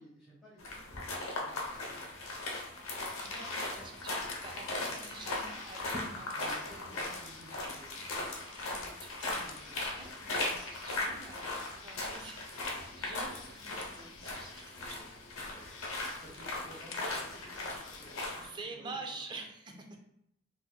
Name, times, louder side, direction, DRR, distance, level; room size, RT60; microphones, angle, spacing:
voice 1, 0.0-2.0 2.3-2.5 4.4-5.3 6.3-8.0 11.9-12.2 14.7-18.5 18.7-19.0, equal, ahead, -12 dB, 0.9 m, -56 dB
sound 1, 0.6-18.5, left 2 dB, 85° left, 0.8 m, -38 dB
sound 2, 2.9-18.3, left 7 dB, 65° left, 0.3 m, -55 dB
voice 2, 3.2-6.8 8.1-15.0 18.4-19.8, right 3 dB, 20° right, 3 dB, 0.3 m, -48 dB
3.6 x 2.8 x 2.2 m, 0.78 s
head